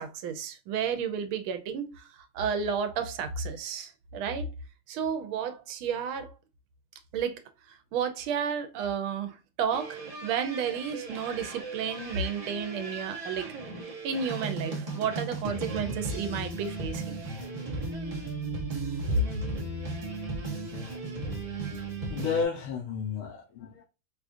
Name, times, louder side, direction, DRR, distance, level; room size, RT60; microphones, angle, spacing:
voice 1, 0.0-4.5 4.9-6.3 7.1-7.4 7.7-13.5 14.0-17.2 19.1-19.2, right 6 dB, 80° right, 1.5 m, -32 dB
sound 1, 9.7-22.4, right 3 dB, 35° right, 0.5 m, -36 dB
voice 2, 22.1-23.8, left 6 dB, 85° left, 1.7 m, -32 dB
4.8 x 2.4 x 2.5 m
omnidirectional pair, 2.3 m